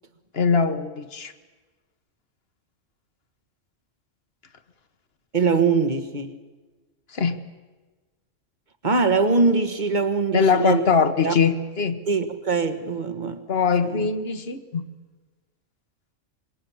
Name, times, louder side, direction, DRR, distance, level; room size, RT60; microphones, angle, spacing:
voice 1, 0.3-1.3 7.1-7.4 10.3-12.0 13.5-14.8, left 5 dB, 50° left, 1.5 m, -22 dB
voice 2, 5.3-6.4 8.8-10.8 11.2-11.3 12.1-13.4 13.8-14.1, right 4 dB, 35° right, 1.7 m, -22 dB
25.5 x 23.5 x 7.2 m
omnidirectional pair, 1.3 m